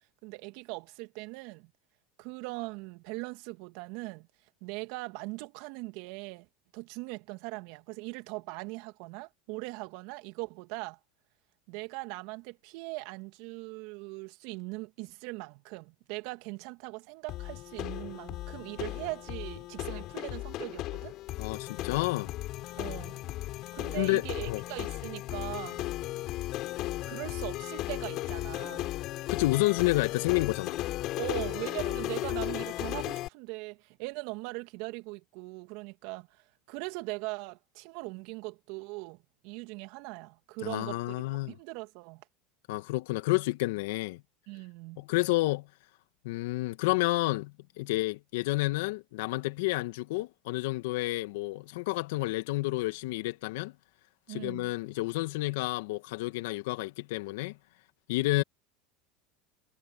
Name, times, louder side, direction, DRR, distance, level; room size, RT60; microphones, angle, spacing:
voice 1, 0.2-1.7 2.2-4.3 4.6-6.5 6.7-11.0 11.7-21.2 22.8-23.2 23.7-25.8 27.0-28.9 31.2-41.2 41.5-42.2 44.5-45.0 54.3-54.7, right 25 dB, 65° right, 2.5 m, -40 dB
sound 1, 17.3-33.3, left 16 dB, 55° left, 6.8 m, -36 dB
voice 2, 21.4-22.3 24.0-24.6 29.3-30.8 40.6-41.5 42.7-44.2 45.0-45.7 46.2-53.7 54.3-57.6 58.1-58.4, left 20 dB, 75° left, 2.2 m, -30 dB
hypercardioid pair, 85°, 0 cm